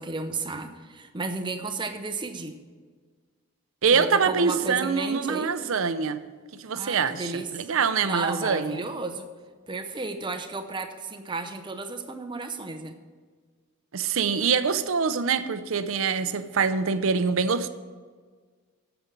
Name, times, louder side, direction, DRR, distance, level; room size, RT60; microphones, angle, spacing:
voice 1, 0.0-2.5 3.9-5.5 6.8-7.7 8.0-9.3 9.7-12.9, right 3 dB, 20° right, 0.7 m, -33 dB
voice 2, 3.8-6.2 6.6-8.8 13.9-17.7, right 5 dB, 65° right, 0.6 m, -24 dB
8.9 x 7.0 x 7.3 m
head